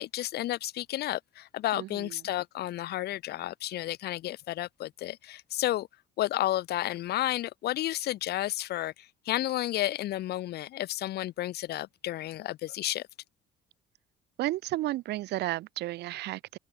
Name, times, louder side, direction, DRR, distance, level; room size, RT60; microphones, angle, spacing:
voice 1, 0.0-5.9 6.2-13.0, left 14 dB, 70° left, 3.9 m, -32 dB
voice 2, 1.7-2.2 14.4-16.6, right 16 dB, 80° right, 6.8 m, -33 dB
open air
cardioid pair, 110°, 17 cm